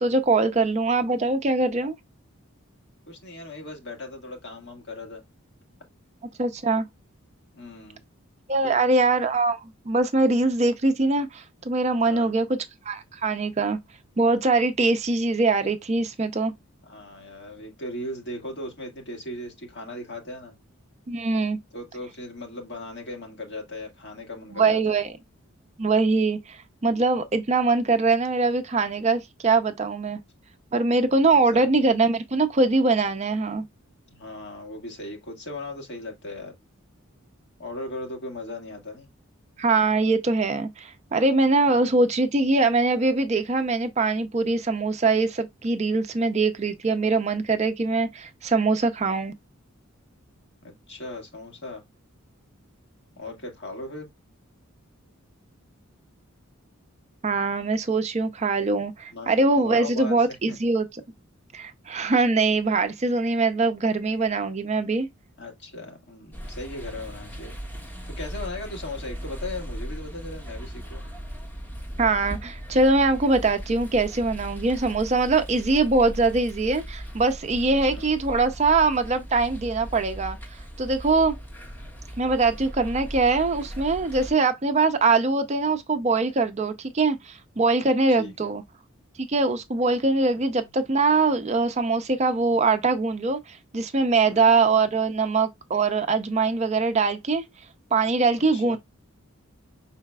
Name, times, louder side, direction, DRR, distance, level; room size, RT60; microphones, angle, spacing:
voice 1, 0.0-2.0 6.4-6.9 8.5-12.6 12.9-13.8 14.2-16.5 21.1-21.6 24.5-25.1 25.8-30.2 30.7-33.6 39.6-49.3 57.2-60.9 61.5-65.1 72.0-80.4 80.8-81.3 82.2-88.6 89.3-97.4 97.9-98.8, right 3 dB, 30° right, 0.4 m, -22 dB
voice 2, 3.1-5.2 7.5-8.0 8.6-8.8 12.0-12.3 16.8-20.5 21.7-25.0 31.3-31.7 34.1-36.5 37.6-39.1 41.6-42.0 50.6-51.8 53.2-54.1 59.1-60.6 65.4-67.5 68.1-71.0 77.9-78.1 84.1-84.4 88.1-88.5 90.4-90.7 94.3-94.5 98.5-98.8, left 1 dB, 50° left, 1.6 m, -38 dB
sound 1, 66.3-84.3, equal, 10° left, 1.4 m, -38 dB
5.6 x 4.0 x 2.2 m
head